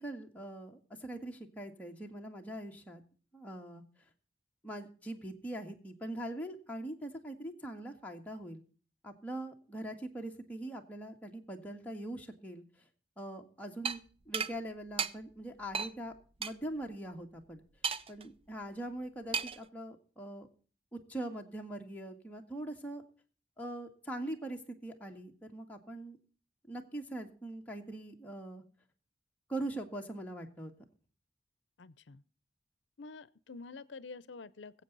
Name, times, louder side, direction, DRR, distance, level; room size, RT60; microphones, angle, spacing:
voice 1, 0.0-3.0 3.3-3.8 4.6-8.6 9.0-12.6 13.2-16.1 16.4-17.6 18.1-20.5 20.9-23.0 23.6-26.2 26.7-28.6 29.5-30.7, right 1 dB, 10° left, 1.7 m, -42 dB
sound 1, 13.8-14.0 14.3-14.5 15.0-15.1 15.7-15.9 16.4-16.5 17.8-18.2 19.3-19.6, right 6 dB, 30° right, 0.5 m, -33 dB
voice 2, 31.8-32.2 33.0-34.8, left 4 dB, 75° left, 0.7 m, -48 dB
21.5 x 8.0 x 4.0 m
head